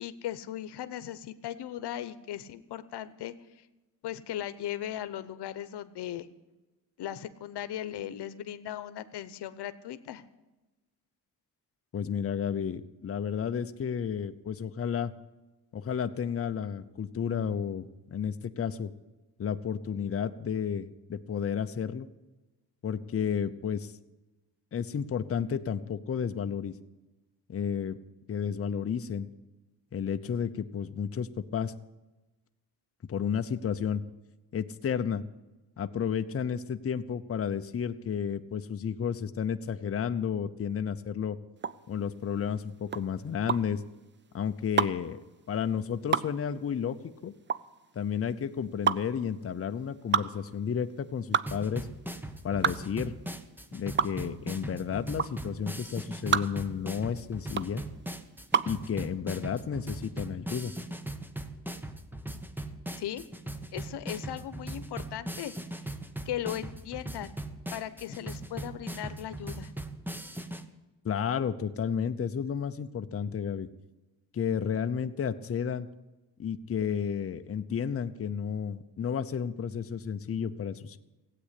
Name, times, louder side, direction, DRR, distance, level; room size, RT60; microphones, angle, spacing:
voice 1, 0.0-3.7 4.0-6.3 7.0-10.2 63.0-63.2 63.7-65.5 65.8-65.9 66.3-67.3 67.7-69.7, left 11 dB, 85° left, 13 dB, 1.0 m, -38 dB
voice 2, 11.9-15.1 15.7-18.9 19.4-22.1 22.8-23.9 24.7-26.7 27.5-28.0 28.3-29.3 29.9-31.7 33.1-34.0 34.5-35.2 35.8-41.4 41.9-43.8 44.3-47.3 47.9-51.9 52.4-53.1 53.7-57.8 58.7-60.7 71.0-73.7 74.3-75.9 76.4-81.0, left 7 dB, 35° left, 8 dB, 0.7 m, -32 dB
sound 1, 41.6-58.8, right 7 dB, 30° right, 0.5 m, -31 dB
sound 2, 51.5-70.6, right 1 dB, 5° right, 1.0 m, -39 dB
16.0 x 8.6 x 8.3 m, 1.1 s
cardioid pair, 120°, 40 cm